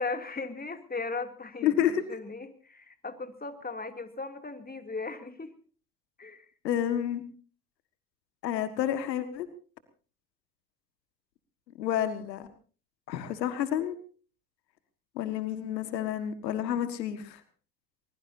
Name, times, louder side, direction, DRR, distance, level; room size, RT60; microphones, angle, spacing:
voice 1, 0.0-5.5 6.2-6.4, left 3 dB, 20° left, 7 dB, 2.9 m, -37 dB
voice 2, 1.6-2.0 6.6-7.2 8.4-9.5 11.8-12.5 13.1-14.0 15.2-17.4, left 10 dB, 90° left, 11 dB, 1.8 m, -29 dB
23.5 x 21.0 x 2.7 m, 0.39 s
hypercardioid pair, 70°, 49 cm